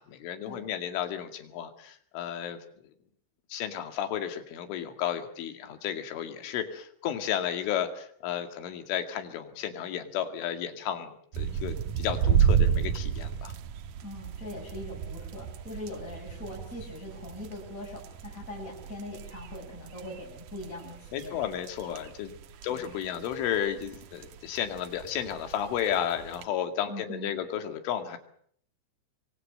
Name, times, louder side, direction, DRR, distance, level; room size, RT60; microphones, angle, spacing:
voice 1, 0.0-2.6 3.5-13.5 21.1-22.3 22.6-28.2, left 10 dB, 80° left, 7 dB, 4.7 m, -33 dB
sound 1, 11.3-26.4, right 8 dB, 75° right, 1.9 m, -32 dB
voice 2, 14.0-21.5 22.7-22.9 26.9-27.3, left 1 dB, 15° left, -4 dB, 7.9 m, -41 dB
26.0 x 23.5 x 6.6 m, 0.62 s
omnidirectional pair, 5.5 m